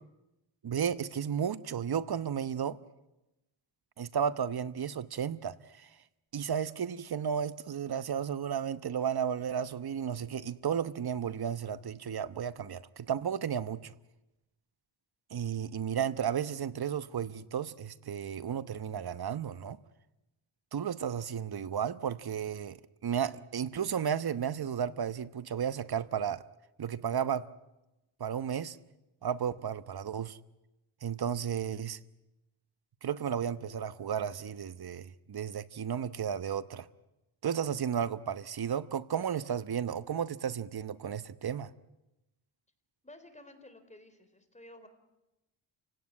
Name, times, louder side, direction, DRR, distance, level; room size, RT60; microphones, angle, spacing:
voice 1, 0.6-2.8 4.0-6.0 6.3-13.9 15.3-19.8 20.7-26.4 26.8-27.5 28.2-28.8 29.2-30.4 31.0-32.0 33.0-36.9 37.4-41.7, right 8 dB, 50° right, 1.1 m, -33 dB
voice 2, 43.0-44.9, left 1 dB, 15° left, 4.0 m, -53 dB
29.0 x 17.5 x 9.6 m
cardioid pair, 80°, 47 cm